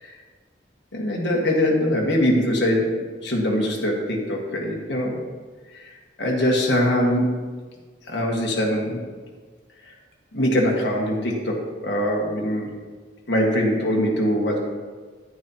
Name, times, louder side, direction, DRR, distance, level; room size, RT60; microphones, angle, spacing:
voice 1, 0.9-5.2 6.2-7.3 8.1-9.0 10.3-12.7 13.3-14.6, equal, 65° left, -1 dB, 1.7 m, -22 dB
10.5 x 9.3 x 2.9 m, 1.4 s
head